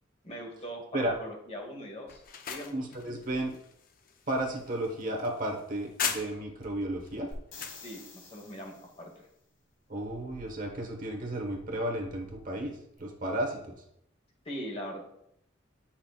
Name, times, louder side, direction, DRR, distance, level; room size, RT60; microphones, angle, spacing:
voice 1, 0.2-2.8 7.8-9.3 14.4-15.0, equal, 30° left, 1 dB, 1.3 m, -41 dB
sound 1, 2.1-6.7 7.1-7.8, left 7 dB, 45° left, 0.6 m, -39 dB
voice 2, 2.7-3.5 4.3-7.3 9.9-12.7 13.0-13.6, right 1 dB, 45° right, 2 dB, 1.2 m, -33 dB
sound 2, 7.3-9.2 13.0-13.1, left 3 dB, 75° left, 1.6 m, -49 dB
8.6 x 5.8 x 2.4 m, 0.74 s
head